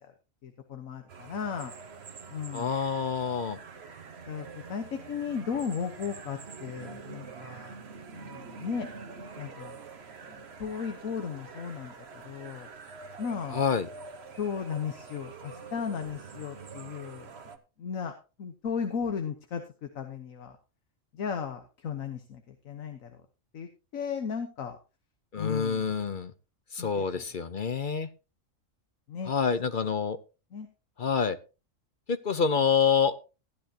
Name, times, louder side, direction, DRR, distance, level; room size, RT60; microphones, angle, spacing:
voice 1, 0.4-1.7 2.3-2.7 4.3-7.8 8.1-8.9 9.4-9.8 10.3-12.7 13.2-13.6 14.3-17.3 17.8-18.1 18.4-20.5 21.1-23.1 23.5-24.8 25.3-25.9 26.8-27.2 29.1-29.3 30.5-30.7, left 6 dB, 85° left, 6 dB, 1.5 m, -35 dB
sound 1, 1.1-17.6, right 5 dB, 55° right, 1.3 m, -46 dB
voice 2, 2.5-3.6 13.5-13.9 25.3-26.3 26.7-28.1 29.3-30.2 31.0-31.4 32.1-33.1, left 6 dB, 45° left, 12 dB, 0.8 m, -27 dB
15.0 x 10.5 x 2.9 m, 0.31 s
omnidirectional pair, 1.4 m